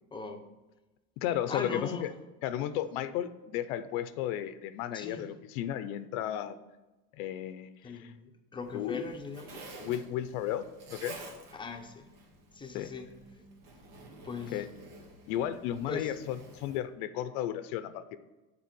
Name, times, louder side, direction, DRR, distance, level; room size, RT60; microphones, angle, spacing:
voice 1, 0.1-0.4 1.5-2.1 4.9-5.2 7.8-9.9 11.5-12.1 12.5-13.1 13.4-13.5 14.2-14.6 15.9-16.2, left 4 dB, 10° left, 4 dB, 0.6 m, -40 dB
voice 2, 1.2-2.1 2.4-6.6 7.2-8.1 8.7-9.0 9.8-11.2 12.7-12.9 14.5-14.7 15.3-18.2, left 11 dB, 85° left, 13 dB, 0.6 m, -34 dB
Zipper (clothing), 8.6-16.8, right 2 dB, 75° right, 1.7 m, -50 dB
6.9 x 4.4 x 6.0 m, 1.1 s
cardioid pair, 135°, 42 cm